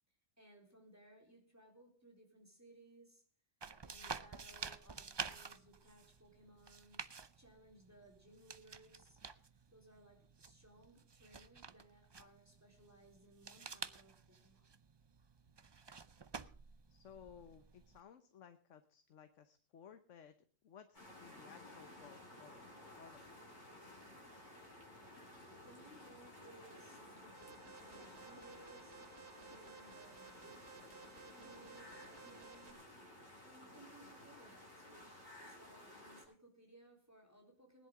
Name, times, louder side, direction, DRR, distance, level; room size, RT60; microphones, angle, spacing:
voice 1, 0.4-3.3 3.8-7.1 7.4-9.2 9.7-14.8 25.6-29.0 29.3-30.8 31.2-32.9 33.4-37.9, right 1 dB, 10° right, 1 dB, 4.0 m, -62 dB
sound 1, 3.6-18.0, right 5 dB, 40° right, 0.4 m, -51 dB
voice 2, 16.9-20.3 20.6-22.6 23.0-23.4, left 8 dB, 70° left, 9 dB, 1.3 m, -59 dB
sound 2, 20.9-36.2, left 1 dB, 35° left, 6.3 m, -56 dB
Alarm, 27.3-32.7, right 6 dB, 55° right, 1.4 m, -58 dB
20.0 x 10.5 x 3.7 m, 0.42 s
omnidirectional pair, 1.3 m